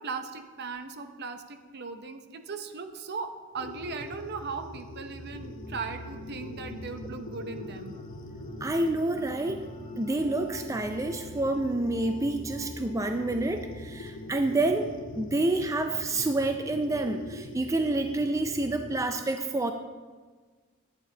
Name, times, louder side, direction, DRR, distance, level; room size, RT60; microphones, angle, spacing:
voice 1, 0.0-8.0, right 4 dB, 55° right, 7 dB, 0.7 m, -38 dB
sound 1, 3.5-19.0, left 1 dB, 70° left, 0.8 m, -43 dB
sound 2, 5.3-17.3, left 1 dB, 30° left, 0.7 m, -47 dB
voice 2, 8.6-9.7 10.0-19.7, right 2 dB, 15° right, 6 dB, 0.4 m, -28 dB
11.5 x 9.2 x 3.9 m, 1.4 s
head